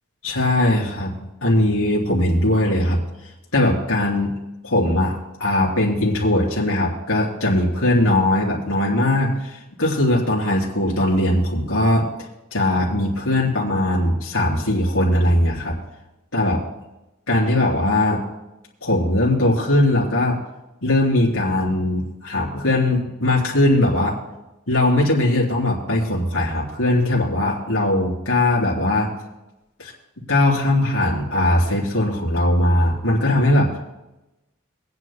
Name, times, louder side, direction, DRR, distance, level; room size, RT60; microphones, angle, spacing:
voice 1, 0.2-3.0 3.5-4.4 4.6-12.1 12.5-15.8 16.3-16.6 17.3-18.2 18.8-20.4 20.8-24.2 24.7-29.1 29.8-29.9 30.3-33.8, left 1 dB, 80° left, -3 dB, 3.3 m, -20 dB
26.5 x 9.6 x 2.2 m, 0.99 s
head